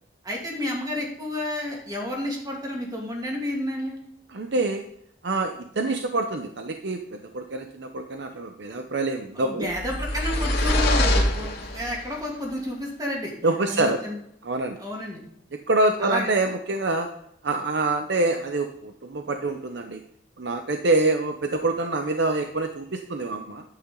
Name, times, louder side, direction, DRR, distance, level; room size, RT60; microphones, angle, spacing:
voice 1, 0.2-4.1 9.3-13.3 13.7-14.2 14.8-15.2 16.0-16.3, left 1 dB, 20° right, -1 dB, 2.7 m, -31 dB
voice 2, 4.3-4.8 5.2-9.7 13.4-14.0 14.4-14.8 15.7-17.1 17.4-20.0 20.4-23.6, right 2 dB, 65° right, 6 dB, 0.7 m, -26 dB
sound 1, 9.7-12.1, left 1 dB, 60° left, 2.2 m, -24 dB
11.5 x 8.9 x 3.9 m, 0.73 s
head